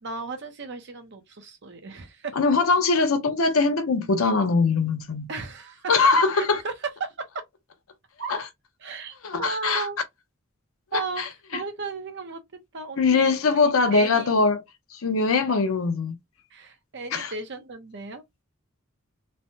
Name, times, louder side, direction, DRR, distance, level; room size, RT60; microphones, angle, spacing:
voice 1, 0.0-2.4 5.3-6.7 7.0-7.3 8.2-8.3 8.8-10.0 10.9-11.2 11.5-12.4 12.7-13.3 13.9-14.3 16.5-18.2, right 4 dB, 55° right, 0.7 m, -35 dB
voice 2, 2.4-5.3 5.9-6.6 8.3-8.4 9.2-9.9 10.9-11.3 13.0-14.6 14.9-16.2 17.1-17.3, left 4 dB, 75° left, 0.6 m, -22 dB
3.2 x 2.1 x 2.7 m
head